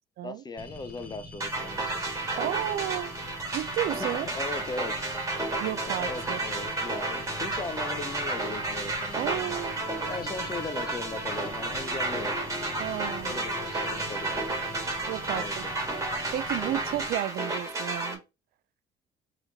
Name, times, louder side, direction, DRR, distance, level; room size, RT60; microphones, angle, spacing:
voice 1, 0.2-2.0 4.0-4.9 5.9-9.6 10.1-12.5 13.2-14.4 15.3-15.7, left 3 dB, 25° left, 0.7 m, -38 dB
sound 1, 0.6-17.1, left 2 dB, 10° left, 1.4 m, -45 dB
sound 2, 1.4-18.1, right 2 dB, 20° right, 1.6 m, -32 dB
voice 2, 2.4-3.2 3.5-4.3 5.6-6.5 9.1-9.8 12.8-13.4 15.1-15.7 16.3-18.2, right 13 dB, 65° right, 0.4 m, -32 dB
sound 3, 6.1-15.1, left 4 dB, 55° left, 1.3 m, -46 dB
4.0 x 3.1 x 4.0 m
cardioid pair, 110°, 17 cm